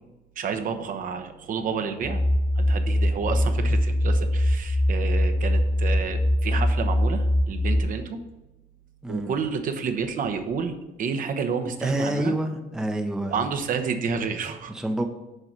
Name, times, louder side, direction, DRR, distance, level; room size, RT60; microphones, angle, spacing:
voice 1, 0.4-2.2 2.6-8.2 9.1-12.3 13.2-14.7, right 6 dB, 55° right, 6 dB, 0.9 m, -30 dB
sound 1, 2.0-7.8, left 1 dB, 55° left, 1.8 m, -22 dB
voice 2, 9.0-9.4 11.8-13.5 14.7-15.1, right 1 dB, 5° right, 5 dB, 0.6 m, -28 dB
6.7 x 4.8 x 6.0 m, 1.0 s
cardioid pair, 110°, 17 cm